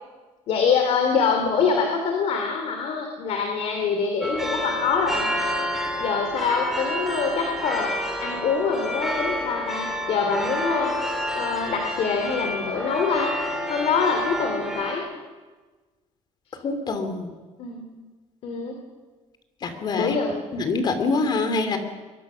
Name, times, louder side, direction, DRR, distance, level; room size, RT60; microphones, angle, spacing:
voice 1, 0.5-5.7 6.0-7.9 8.2-10.9 11.3-13.3 13.7-15.1 17.6-18.0 18.4-18.8 19.9-20.4, left 5 dB, 55° left, 3 dB, 2.8 m, -25 dB
sound 1, 4.2-14.9, equal, 5° right, 2.7 m, -29 dB
voice 2, 16.6-17.3 19.6-20.2 20.5-21.8, left 3 dB, 35° left, 8 dB, 2.8 m, -25 dB
23.0 x 22.5 x 6.3 m, 1.3 s
cardioid pair, 160°, 12 cm